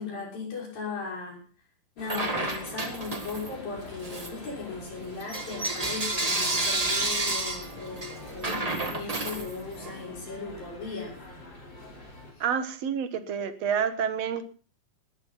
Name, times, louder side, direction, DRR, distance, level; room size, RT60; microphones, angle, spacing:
voice 1, 0.0-1.4 2.0-11.1 12.3-12.4, left 4 dB, 90° left, -1 dB, 8.0 m, -37 dB
sound 1, 2.0-12.3, left 2 dB, 30° left, 5.1 m, -45 dB
Bell / Coin (dropping), 2.0-3.6 4.0-10.0, right 2 dB, 35° right, 0.6 m, -31 dB
voice 2, 12.4-14.5, right 7 dB, 60° right, 10 dB, 2.1 m, -28 dB
19.0 x 13.0 x 4.1 m, 0.38 s
omnidirectional pair, 3.9 m